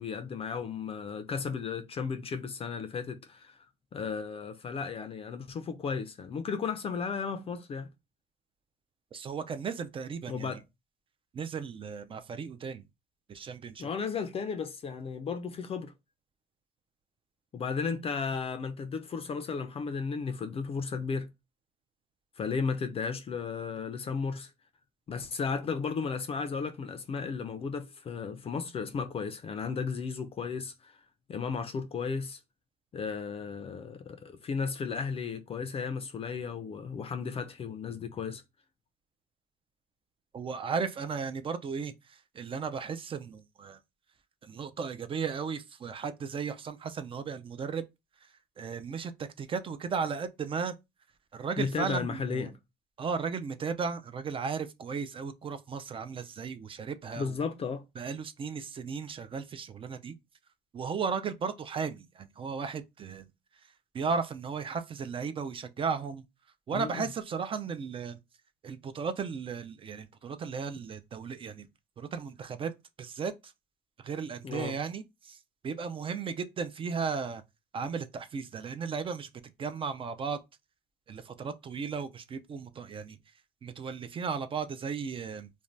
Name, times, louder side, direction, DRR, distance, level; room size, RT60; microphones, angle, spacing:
voice 1, 0.0-3.6 3.9-7.9 10.3-10.6 13.8-15.9 17.5-21.3 22.4-24.5 25.1-31.0 31.3-32.4 32.9-38.4 51.6-52.5 57.2-57.8 66.7-67.0 74.4-74.8, left 5 dB, 35° left, 0.4 m, -34 dB
voice 2, 9.1-10.6 11.3-12.8 13.3-13.9 40.3-43.8 44.4-47.9 48.2-48.3 48.6-50.7 51.3-52.5 53.0-57.4 58.0-60.2 60.7-63.3 63.9-66.2 66.7-68.2 68.6-71.7 72.0-72.7 73.0-73.5 74.0-75.4 75.6-77.4 77.7-80.4 81.1-83.2 83.6-85.5, right 5 dB, 30° right, 0.3 m, -35 dB
2.6 x 2.2 x 3.1 m
cardioid pair, 110°, 17 cm